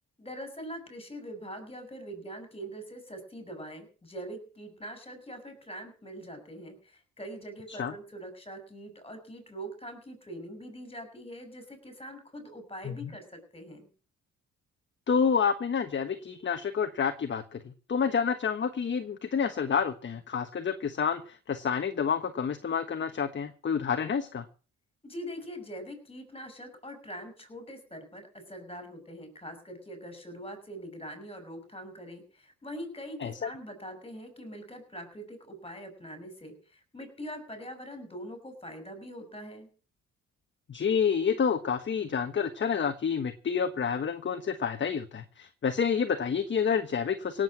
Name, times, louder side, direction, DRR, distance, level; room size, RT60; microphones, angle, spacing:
voice 1, 0.2-13.9 25.0-39.7, equal, 20° left, 8 dB, 6.2 m, -43 dB
voice 2, 15.1-24.5 33.2-33.5 40.7-47.4, left 6 dB, 40° left, 9 dB, 1.3 m, -29 dB
17.5 x 7.9 x 7.5 m, 0.40 s
cardioid pair, 90°, 30 cm